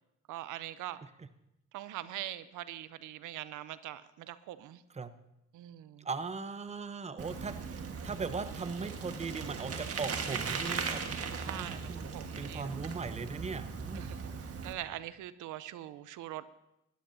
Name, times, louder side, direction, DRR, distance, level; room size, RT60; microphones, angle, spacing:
voice 1, 0.3-1.0 1.7-4.8 5.5-6.1 11.4-12.7 14.0-16.5, right 13 dB, 85° right, 14 dB, 0.6 m, -43 dB
voice 2, 6.0-11.0 11.4-12.1 12.4-14.1, right 4 dB, 20° right, 11 dB, 0.8 m, -39 dB
Bicycle, 7.2-14.7, right 5 dB, 50° right, 1.5 m, -38 dB
19.5 x 13.5 x 2.7 m, 0.87 s
cardioid pair, 90°, 30 cm